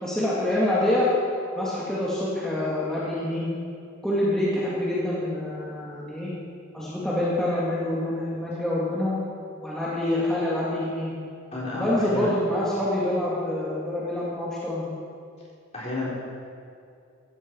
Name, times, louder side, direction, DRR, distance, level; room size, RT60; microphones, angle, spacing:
voice 1, 0.0-1.1 1.6-3.5 4.0-6.3 6.7-9.2 9.6-11.1 11.7-14.8, left 1 dB, 5° left, -9 dB, 2.3 m, -26 dB
voice 2, 11.5-12.3 15.7-16.1, left 2 dB, 30° left, -6 dB, 4.1 m, -31 dB
15.5 x 15.0 x 4.7 m, 2.4 s
head